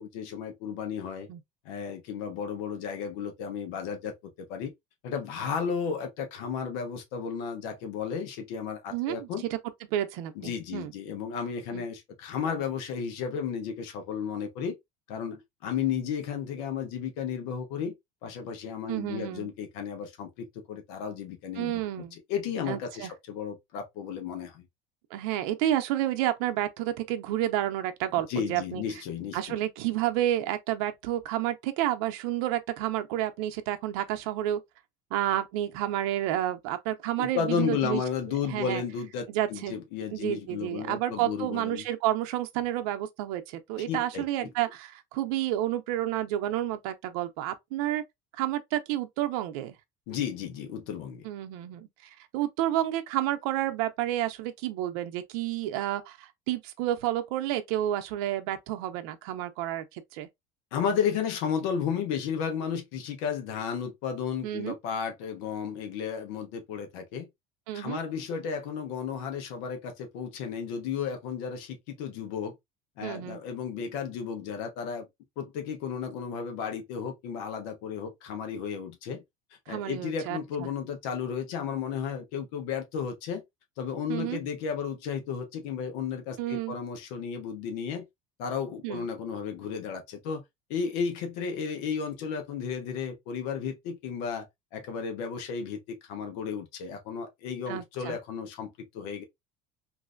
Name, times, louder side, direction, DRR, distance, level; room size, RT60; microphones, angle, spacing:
voice 1, 0.0-1.3 1.6-4.7 5.0-9.4 10.4-14.8 15.1-17.9 18.2-24.6 28.3-29.6 37.2-41.8 43.9-44.5 50.1-51.2 60.7-67.3 67.7-72.5 73.0-75.1 75.4-79.2 79.7-83.4 83.8-88.0 88.4-90.4 90.7-94.5 94.7-99.2, left 7 dB, 75° left, 0.9 m, -33 dB
voice 2, 8.9-9.6 9.9-10.9 11.7-11.8 18.9-19.5 21.6-22.2 22.7-23.1 25.1-28.8 29.3-34.6 35.1-38.0 38.4-38.8 39.3-39.7 40.1-48.0 48.4-49.7 51.2-51.9 52.3-60.3 64.4-64.7 67.7-68.0 73.0-73.4 79.7-80.7 84.1-84.4 86.4-86.8 88.8-89.1 97.7-98.2, right 13 dB, 80° right, 0.6 m, -30 dB
3.1 x 2.6 x 2.5 m
cardioid pair, 130°, 18 cm